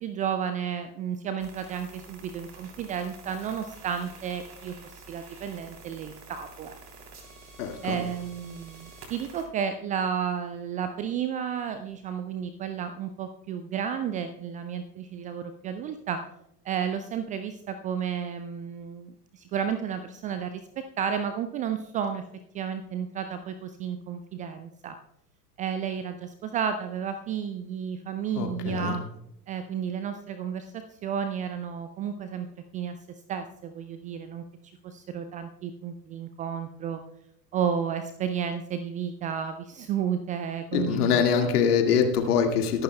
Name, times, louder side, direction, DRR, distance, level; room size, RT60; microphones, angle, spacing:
voice 1, 0.0-6.8 7.8-16.2 16.6-22.2 22.5-25.0 25.6-29.0 29.5-32.5 32.7-33.0 33.3-34.4 34.8-37.0 37.5-41.2, right 8 dB, 20° right, 10 dB, 0.3 m, -32 dB
sound 1, 1.4-9.5, right 3 dB, 35° right, 3.3 m, -48 dB
voice 2, 7.6-8.0 28.4-29.0 40.7-42.8, left 7 dB, 65° left, 4 dB, 2.0 m, -24 dB
22.5 x 11.5 x 2.2 m, 0.81 s
figure-of-eight pair, 75°, 50 cm